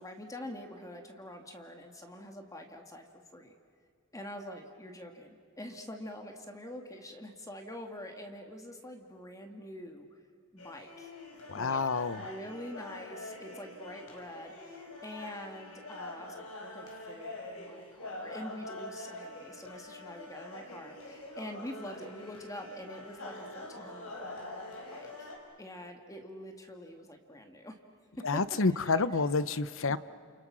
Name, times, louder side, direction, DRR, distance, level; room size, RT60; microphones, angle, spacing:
voice 1, 0.0-3.1 3.3-3.5 4.1-10.1 10.5-11.1 11.5-24.4 24.9-25.3 25.6-27.8 28.2-28.4 28.8-29.0 29.9-30.0, left 1 dB, 15° left, 4 dB, 2.1 m, -45 dB
sound 1, 10.6-25.4, left 2 dB, 85° left, 5.5 m, -45 dB
voice 2, 11.5-12.3 28.2-30.0, left 4 dB, 65° left, 15 dB, 0.8 m, -29 dB
30.0 x 29.0 x 6.3 m, 2.2 s
head